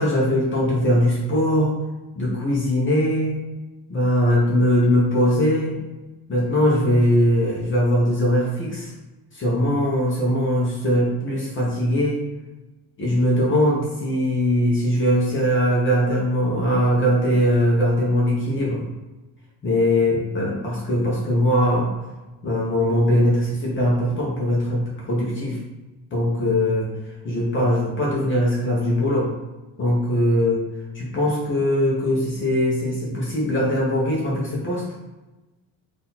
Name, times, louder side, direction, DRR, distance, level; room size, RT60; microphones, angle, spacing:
voice 1, 0.0-1.7 2.1-3.4 3.9-5.8 6.3-8.9 9.3-12.2 13.0-18.8 19.6-21.9 22.4-25.6 26.1-26.9 27.2-29.3 29.8-30.6 30.9-34.8, equal, 30° left, -4 dB, 1.0 m, -21 dB
3.9 x 2.8 x 4.1 m, 1.1 s
cardioid pair, 145°, 38 cm